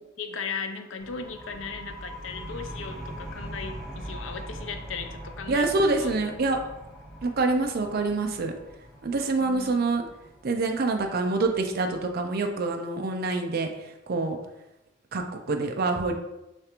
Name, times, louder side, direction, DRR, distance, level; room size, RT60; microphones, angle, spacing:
voice 1, 0.0-5.7 5.9-6.1 9.4-9.8, left 5 dB, 85° left, 7 dB, 0.5 m, -37 dB
sound 1, 1.0-12.4, equal, ahead, 1.0 m, -42 dB
voice 2, 5.5-6.6 7.2-8.5 9.0-10.1 10.4-14.4 15.1-16.1, right 3 dB, 55° right, 4 dB, 0.5 m, -26 dB
6.5 x 2.5 x 3.0 m, 0.92 s
head